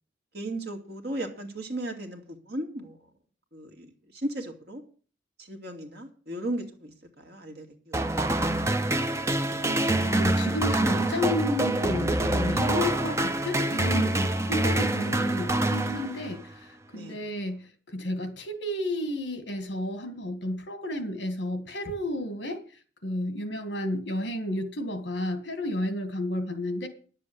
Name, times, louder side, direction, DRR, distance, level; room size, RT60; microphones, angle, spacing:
voice 1, 0.3-3.1 3.5-4.8 5.4-8.4 16.9-17.2, right 1 dB, 55° right, 2.4 m, -36 dB
sound 1, 7.9-16.5, right 1 dB, 15° right, 0.6 m, -26 dB
voice 2, 9.6-22.6 23.0-26.9, left 1 dB, 65° left, 2.1 m, -32 dB
10.5 x 7.5 x 8.2 m
head